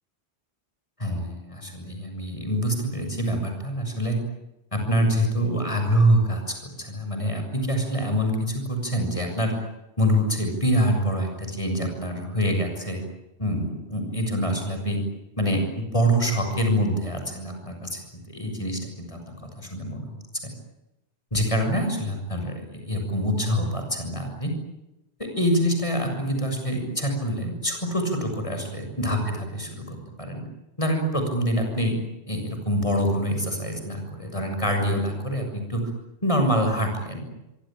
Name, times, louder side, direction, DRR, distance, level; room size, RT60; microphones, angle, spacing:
voice 1, 1.0-4.2 4.7-9.5 10.0-13.0 13.4-15.0 15.4-18.0 18.3-20.5 21.3-24.5 25.2-30.4 30.8-32.0 32.3-35.8 36.2-37.3, equal, 30° left, 4 dB, 6.8 m, -25 dB
25.5 x 24.0 x 9.0 m, 0.93 s
omnidirectional pair, 1.1 m